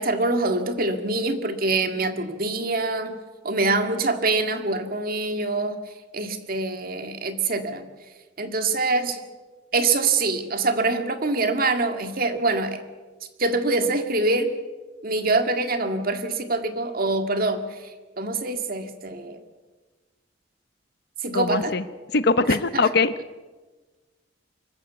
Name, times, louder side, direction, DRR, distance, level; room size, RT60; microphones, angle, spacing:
voice 1, 0.0-3.1 3.4-5.8 6.1-7.9 8.4-9.2 9.7-12.8 13.4-14.5 15.0-17.6 18.2-19.4 21.2-21.7, right 3 dB, 50° right, 7 dB, 2.0 m, -24 dB
voice 2, 21.3-21.8 22.1-23.1, left 3 dB, 60° left, 14 dB, 0.9 m, -21 dB
24.5 x 14.0 x 8.2 m, 1.3 s
head